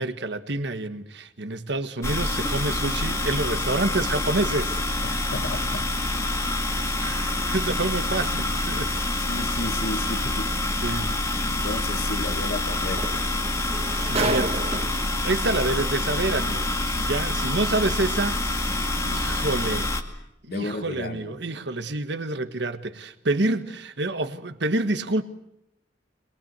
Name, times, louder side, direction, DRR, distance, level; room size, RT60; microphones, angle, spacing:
voice 1, 0.0-4.7 7.0-8.9 10.8-11.1 11.4-11.5 14.1-14.6 15.2-18.4 19.0-19.9 20.4-25.2, right 2 dB, 70° right, 1.4 m, -27 dB
sound 1, 2.0-20.0, left 1 dB, 15° left, 2.1 m, -26 dB
voice 2, 5.0-5.9 6.7-6.9 9.3-10.5 11.5-13.3 20.5-21.4, left 2 dB, 60° left, 1.8 m, -33 dB
Projector screen retracted, 10.8-10.9 12.6-12.7 13.0-15.2 16.2-16.3, right 2 dB, 35° right, 1.4 m, -30 dB
22.5 x 22.5 x 8.1 m
head